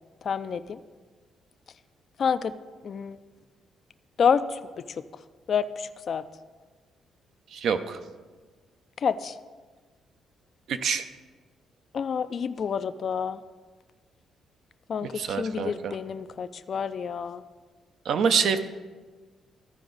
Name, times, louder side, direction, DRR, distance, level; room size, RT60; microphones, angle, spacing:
voice 1, 0.2-0.8 2.2-2.6 2.8-3.2 4.2-5.0 5.5-6.2 9.0-9.4 11.9-13.4 14.9-17.4, left 6 dB, 55° left, 11 dB, 0.3 m, -28 dB
voice 2, 7.5-8.0 10.7-11.1 15.1-15.9 18.0-18.6, right 6 dB, 70° right, 9 dB, 0.6 m, -26 dB
14.0 x 4.8 x 3.9 m, 1.4 s
cardioid pair, 90°, 0 cm